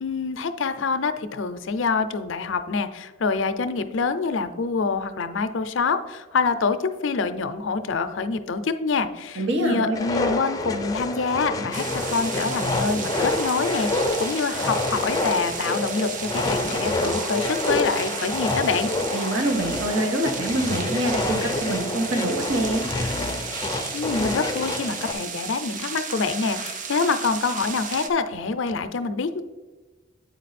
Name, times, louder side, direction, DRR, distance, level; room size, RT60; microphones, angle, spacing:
voice 1, 0.0-18.9 23.9-29.4, left 4 dB, 75° left, 10 dB, 0.5 m, -26 dB
voice 2, 9.4-10.0 19.1-22.8, right 1 dB, 70° right, 3 dB, 1.3 m, -25 dB
sound 1, 9.9-25.1, left 2 dB, 20° left, 0.5 m, -28 dB
sound 2, 11.7-28.1, right 6 dB, 40° right, 0.5 m, -34 dB
8.4 x 4.6 x 4.2 m, 1.2 s
head